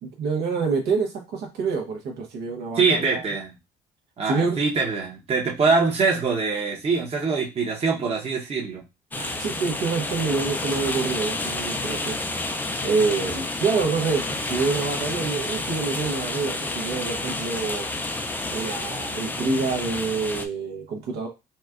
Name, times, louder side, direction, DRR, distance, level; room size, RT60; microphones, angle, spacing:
voice 1, 0.0-3.2 4.3-4.6 9.2-12.2 12.8-17.9 18.5-21.3, right 4 dB, 75° right, 1 dB, 1.0 m, -27 dB
voice 2, 2.8-3.5 4.2-8.8, right 4 dB, 35° right, -1 dB, 1.0 m, -23 dB
sound 1, 9.1-20.5, left 2 dB, 10° left, 0.4 m, -30 dB
4.2 x 2.2 x 2.4 m, 0.25 s
cardioid pair, 110°, 17 cm